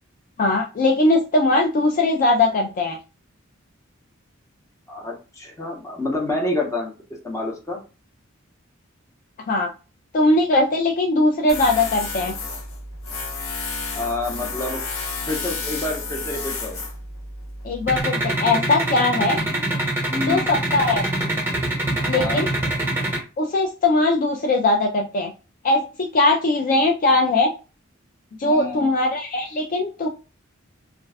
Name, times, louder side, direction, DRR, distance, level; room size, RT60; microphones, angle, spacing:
voice 1, 0.4-3.0 9.5-9.7 10.1-12.3 17.6-19.4 20.2-21.1 22.0-22.5 23.4-25.3 25.6-27.5 28.4-30.1, left 2 dB, 45° left, 1 dB, 0.3 m, -20 dB
voice 2, 4.9-6.9 7.2-7.8 14.0-14.8 15.3-16.8 20.1-20.5 22.1-22.4 28.4-28.9, left 2 dB, 15° left, 0 dB, 0.7 m, -28 dB
Tools, 11.5-18.0, left 3 dB, 85° left, 0.8 m, -31 dB
sound 1, 17.9-23.2, right 1 dB, 10° right, 0.9 m, -24 dB
2.4 x 2.2 x 3.3 m, 0.33 s
head